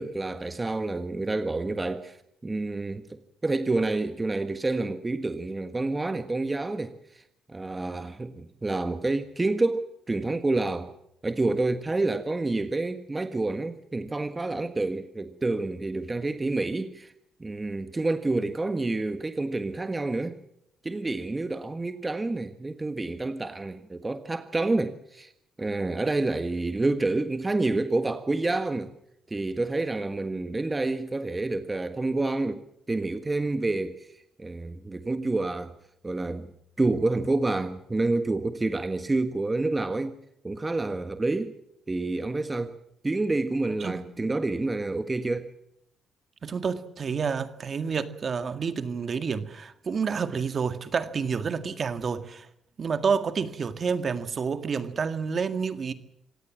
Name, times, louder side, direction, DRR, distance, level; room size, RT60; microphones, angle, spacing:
voice 1, 0.0-7.2 7.5-10.9 11.2-17.1 17.4-20.4 20.8-25.3 25.6-28.9 29.3-34.1 34.4-35.7 36.0-36.5 36.8-40.2 40.4-41.5 41.9-42.7 43.0-45.5, right 2 dB, 20° right, 1.5 m, -28 dB
voice 2, 43.8-44.3 46.4-52.5 52.8-55.9, right 5 dB, 45° right, 1.9 m, -29 dB
26.5 x 17.5 x 7.4 m
cardioid pair, 90°, 0 cm